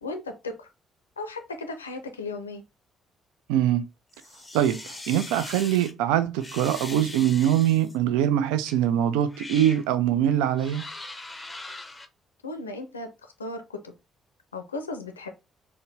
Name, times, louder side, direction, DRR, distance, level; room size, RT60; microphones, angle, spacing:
voice 1, 0.0-0.7 1.2-2.6 12.4-13.9 14.5-15.3, left 2 dB, 85° left, 0.4 m, -36 dB
voice 2, 3.5-3.9 4.5-10.9, right 11 dB, 70° right, 0.4 m, -23 dB
sound 1, 4.1-5.9 6.4-8.0 8.6-8.8 9.3-9.8 10.5-12.1, left 2 dB, 20° left, 0.7 m, -41 dB
4.4 x 2.2 x 3.2 m
figure-of-eight pair, 45°, 0 cm